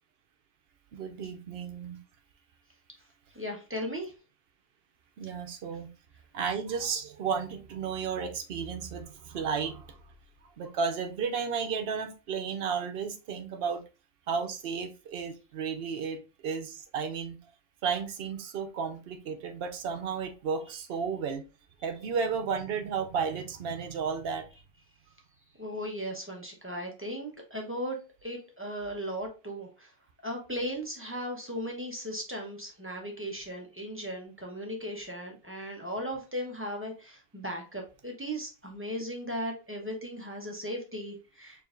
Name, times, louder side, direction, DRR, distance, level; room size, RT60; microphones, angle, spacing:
voice 1, 0.9-2.0 5.2-5.9 6.3-10.0 10.6-13.8 14.3-17.4 17.8-21.4 21.8-24.5, right 6 dB, 75° right, 5 dB, 0.9 m, -33 dB
voice 2, 3.3-4.1 25.6-29.9 30.2-41.6, equal, 15° right, 0 dB, 0.9 m, -37 dB
4.6 x 3.2 x 2.5 m, 0.31 s
omnidirectional pair, 1.0 m